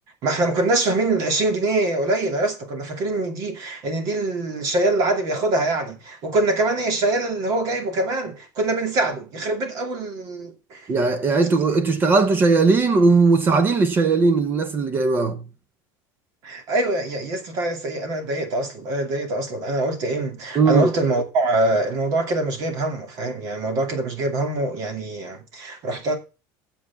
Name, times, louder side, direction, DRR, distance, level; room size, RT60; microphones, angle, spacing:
voice 1, 0.2-10.8 16.4-26.2, right 2 dB, 45° right, 2.5 m, -24 dB
voice 2, 10.9-15.4 20.5-20.9, right 4 dB, 25° right, 0.8 m, -18 dB
8.4 x 7.4 x 7.0 m
cardioid pair, 175°, 9 cm